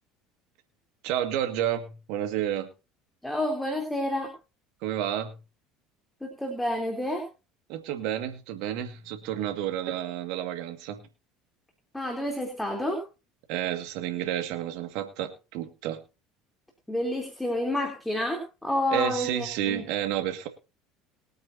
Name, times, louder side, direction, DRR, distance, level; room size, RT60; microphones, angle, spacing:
voice 1, 1.0-2.7 4.8-5.4 7.7-11.0 13.5-16.0 18.9-20.5, right 11 dB, 60° right, 7 dB, 2.0 m, -30 dB
voice 2, 3.2-4.3 6.2-7.2 11.9-13.0 16.9-19.8, left 1 dB, 5° left, 2 dB, 3.5 m, -29 dB
22.5 x 8.9 x 2.8 m, 0.31 s
figure-of-eight pair, 65°, 0 cm